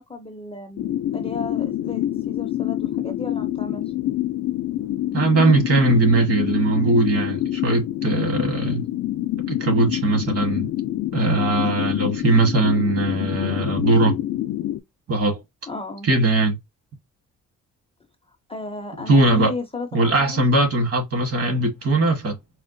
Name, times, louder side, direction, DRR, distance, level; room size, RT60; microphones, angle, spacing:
voice 1, 0.0-3.8 11.7-12.1 15.7-16.1 18.5-20.4, left 3 dB, 20° left, 0.5 m, -34 dB
sound 1, 0.8-14.8, left 13 dB, 75° left, 0.5 m, -26 dB
voice 2, 5.1-8.8 9.5-10.7 11.1-14.2 15.1-15.4 16.0-16.6 19.1-19.5 19.9-22.4, right 2 dB, 50° right, 1.3 m, -20 dB
4.4 x 2.1 x 2.6 m
wide cardioid pair, 155°, 30 cm